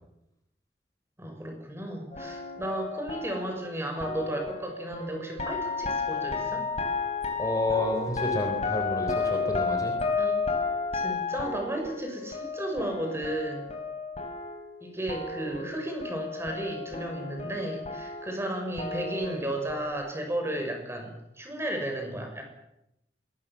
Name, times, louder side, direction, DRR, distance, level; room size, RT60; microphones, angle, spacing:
voice 1, 1.2-6.6 10.2-10.4 10.9-13.7 14.8-22.4, right 1 dB, 15° right, 3 dB, 6.8 m, -34 dB
sound 1, 2.1-14.8 15.1-19.9, left 4 dB, 35° left, 4.6 m, -32 dB
voice 2, 7.4-9.9, left 1 dB, 20° left, 4 dB, 3.9 m, -30 dB
24.5 x 21.5 x 7.6 m, 0.85 s
head